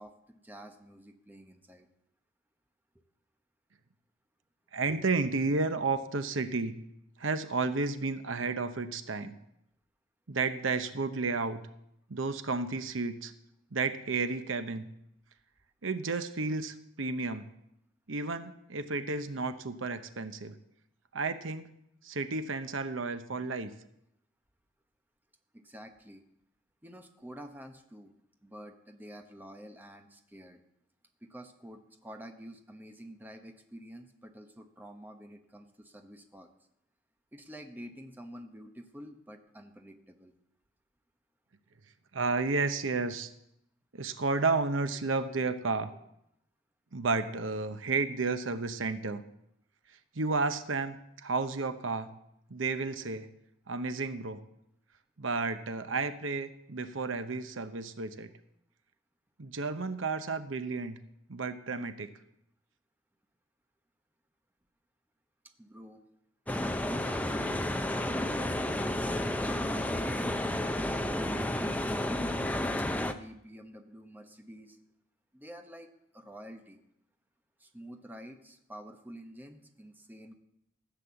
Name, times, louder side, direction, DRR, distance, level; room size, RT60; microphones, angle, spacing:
voice 1, 0.0-1.9 25.5-26.2 26.8-28.1 28.4-30.6 31.2-36.5 37.3-40.3 65.6-66.0 66.6-68.4 69.0-71.8 73.0-74.8 75.3-75.9 76.1-76.8 77.6-80.3, equal, 10° right, 5 dB, 1.0 m, -48 dB
voice 2, 4.7-6.8 7.2-9.3 10.3-11.6 12.1-13.3 13.7-14.9 15.8-17.4 18.1-20.5 21.1-21.7 22.0-23.7 42.1-43.3 43.9-45.9 46.9-49.2 50.1-52.1 52.5-53.3 53.7-54.4 55.2-58.3 59.4-61.0 61.3-62.1, right 3 dB, 70° right, 10 dB, 0.9 m, -32 dB
sound 1, 66.5-73.1, left 1 dB, 5° left, 0.6 m, -31 dB
15.0 x 8.1 x 7.0 m, 0.78 s
head